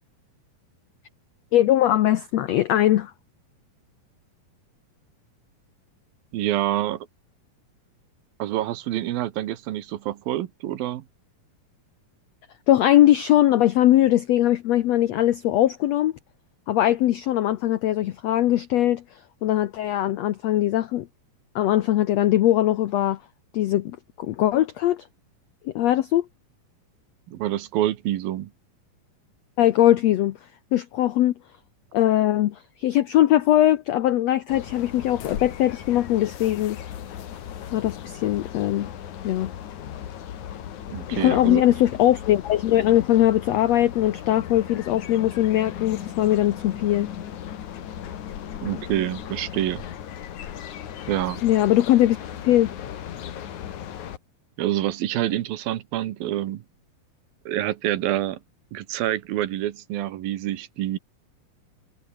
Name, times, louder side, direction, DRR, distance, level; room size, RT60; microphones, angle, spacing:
voice 1, 1.5-3.1 12.7-16.1 16.7-21.1 21.5-23.2 23.5-25.1 25.6-26.3 29.6-30.4 30.7-31.3 31.9-36.8 37.7-38.9 39.2-39.5 41.1-47.1 51.4-52.2 52.4-52.7, left 13 dB, 85° left, 1.5 m, -20 dB
voice 2, 6.3-7.1 8.4-11.0 27.3-28.5 40.9-41.6 48.6-49.9 51.1-51.4 54.6-56.6 57.5-58.4 58.7-61.0, right 13 dB, 80° right, 3.1 m, -27 dB
sound 1, 34.5-54.2, left 10 dB, 60° left, 3.0 m, -37 dB
omnidirectional pair, 4.1 m